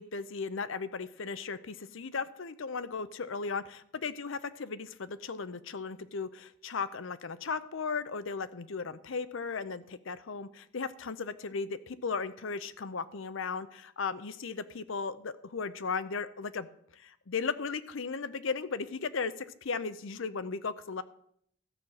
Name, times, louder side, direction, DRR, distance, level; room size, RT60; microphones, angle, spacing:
voice 1, 0.0-16.7 16.9-21.0, left 5 dB, 65° left, 14 dB, 0.6 m, -36 dB
13.5 x 5.6 x 7.6 m, 0.68 s
head